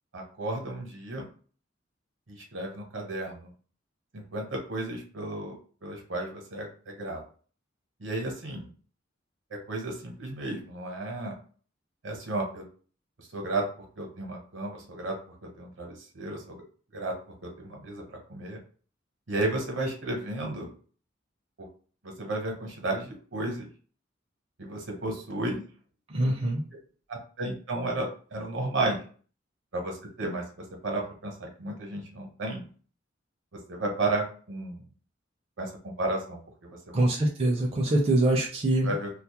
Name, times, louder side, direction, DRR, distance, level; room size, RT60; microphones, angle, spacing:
voice 1, 0.1-1.3 2.3-3.5 4.1-5.6 5.8-7.2 8.0-8.7 9.5-11.3 12.0-12.7 13.2-13.6 14.0-16.6 16.9-17.1 17.4-18.0 18.3-18.6 19.3-20.7 21.6-21.7 22.0-23.7 24.6-25.6 27.1-29.0 29.7-32.6 33.7-34.8 35.6-36.9 38.8-39.1, right 2 dB, 75° right, 1 dB, 0.8 m, -33 dB
voice 2, 26.1-26.6 36.9-38.9, right 1 dB, 30° right, -1 dB, 0.4 m, -24 dB
2.3 x 2.0 x 2.9 m, 0.41 s
head